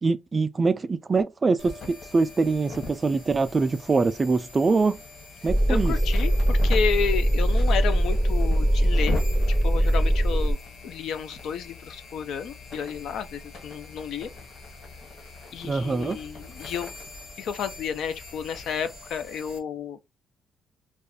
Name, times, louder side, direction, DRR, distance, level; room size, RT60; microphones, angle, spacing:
voice 1, 0.0-5.0 5.4-5.9 15.6-16.2, right 4 dB, 30° right, 0.3 m, -24 dB
sound 1, 1.6-19.6, left 3 dB, 60° left, 1.3 m, -41 dB
sound 2, 5.5-10.5, right 1 dB, 15° left, 0.6 m, -21 dB
voice 2, 5.7-9.2 9.6-10.6 10.8-14.3 15.5-16.9 17.4-20.0, left 7 dB, 75° left, 0.4 m, -31 dB
2.4 x 2.3 x 3.4 m
cardioid pair, 90°, 0 cm